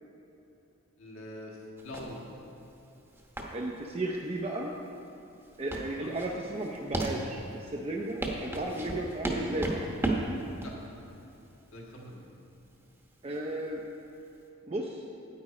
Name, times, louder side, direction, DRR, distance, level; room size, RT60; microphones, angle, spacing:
voice 1, 1.0-2.2 6.0-6.1 10.6-10.7 11.7-12.3, left 1 dB, 65° left, -2 dB, 1.7 m, -43 dB
sound 1, 1.8-14.4, right 1 dB, 10° right, 0.9 m, -36 dB
voice 2, 3.5-4.7 5.6-9.8 13.2-13.8 14.7-15.0, right 1 dB, 30° right, 0 dB, 0.5 m, -34 dB
9.6 x 9.3 x 4.2 m, 2.9 s
head